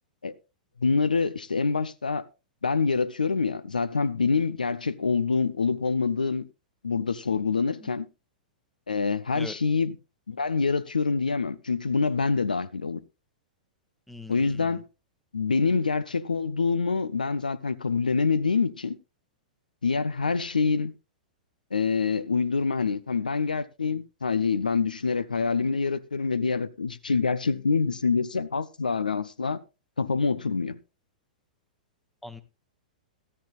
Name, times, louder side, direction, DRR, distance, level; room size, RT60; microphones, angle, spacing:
voice 1, 0.8-2.3 2.6-6.4 6.8-8.1 8.9-10.0 10.3-13.0 14.3-14.9 15.3-19.0 19.8-20.9 21.7-29.6 30.0-30.8, left 4 dB, 75° left, 0.5 m, -26 dB
voice 2, 14.1-14.8 32.2-32.4, left 1 dB, ahead, 1.0 m, -42 dB
13.0 x 13.0 x 2.4 m
figure-of-eight pair, 105°, 4 cm